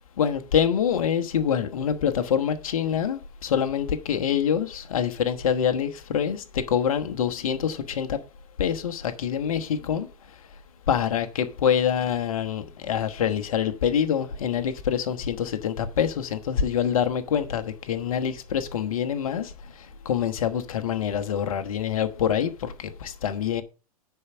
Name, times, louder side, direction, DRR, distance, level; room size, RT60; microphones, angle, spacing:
voice 1, 0.2-8.2 8.6-10.1 10.9-23.6, left 8 dB, 65° left, 1.2 m, -26 dB
9.9 x 4.8 x 6.7 m
figure-of-eight pair, 100°, 19 cm